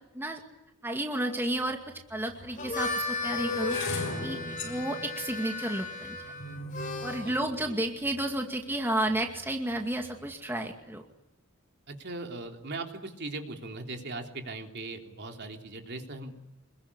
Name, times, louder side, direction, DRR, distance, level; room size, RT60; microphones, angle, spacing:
voice 1, 0.8-1.8 2.1-4.4 4.6-6.2 7.0-11.0, right 1 dB, 10° right, 3 dB, 2.3 m, -32 dB
sound 1, 1.4-1.5 2.3-8.4 9.1-9.5 9.7-10.1, left 3 dB, 60° left, 6.3 m, -38 dB
Harmonica, 2.4-7.4, left 3 dB, 40° left, 4.0 m, -36 dB
voice 2, 4.4-4.8 7.2-7.3 7.6-7.7 11.9-16.4, right 2 dB, 55° right, 4 dB, 3.5 m, -39 dB
27.0 x 22.0 x 10.0 m, 0.94 s
head